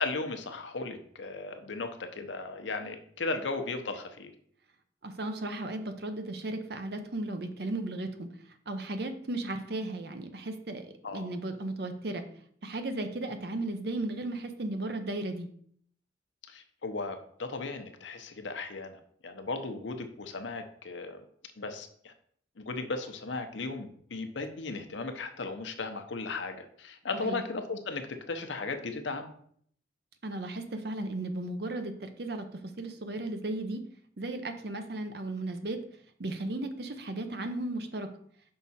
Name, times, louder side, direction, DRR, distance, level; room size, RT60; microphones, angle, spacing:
voice 1, 0.0-4.3 11.0-11.3 16.5-21.2 21.6-22.1 22.6-29.3, left 3 dB, 80° left, 7 dB, 0.8 m, -36 dB
voice 2, 5.0-8.3 8.7-12.2 12.6-15.5 27.2-27.4 30.2-33.8 34.2-35.8 36.2-38.1, right 2 dB, 55° right, 7 dB, 0.7 m, -35 dB
5.6 x 4.7 x 4.2 m, 0.62 s
head